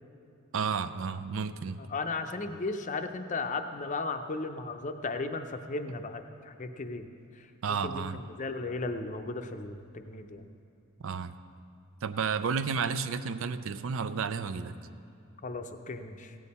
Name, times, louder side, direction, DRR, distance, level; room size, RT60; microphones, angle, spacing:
voice 1, 0.5-1.8 7.6-8.2 11.0-11.3 12.0-14.7, right 6 dB, 65° right, 12 dB, 0.4 m, -31 dB
voice 2, 1.8-7.1 7.3-10.5 15.4-16.4, left 3 dB, 35° left, 7 dB, 0.5 m, -36 dB
16.0 x 8.6 x 4.2 m, 2.7 s
head